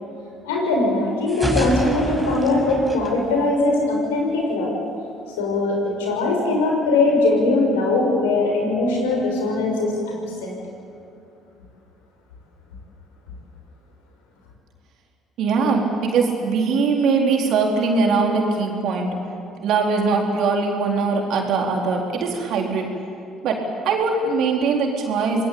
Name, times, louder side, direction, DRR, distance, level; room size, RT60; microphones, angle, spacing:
voice 1, 0.4-4.7 5.4-10.6, left 2 dB, 85° left, 0 dB, 6.1 m, -21 dB
sound 1, 1.3-4.1, right 1 dB, 5° right, 5.5 m, -28 dB
voice 2, 15.4-19.2 19.6-22.9 23.4-25.5, right 4 dB, 65° right, 1 dB, 4.2 m, -21 dB
26.5 x 20.5 x 8.8 m, 2.6 s
hypercardioid pair, 60°, 0 cm